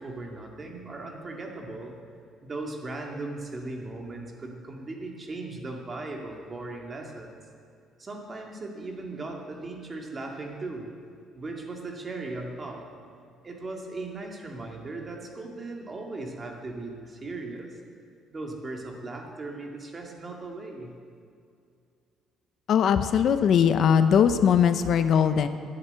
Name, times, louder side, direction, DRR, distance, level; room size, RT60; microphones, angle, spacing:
voice 1, 0.0-1.9 2.4-7.4 8.0-10.9 11.3-12.9 13.4-17.8 18.3-20.9, right 2 dB, 30° right, 1 dB, 2.2 m, -38 dB
voice 2, 22.7-25.5, left 8 dB, 60° left, 10 dB, 0.7 m, -20 dB
11.0 x 10.5 x 8.2 m, 2.4 s
cardioid pair, 115°, 0 cm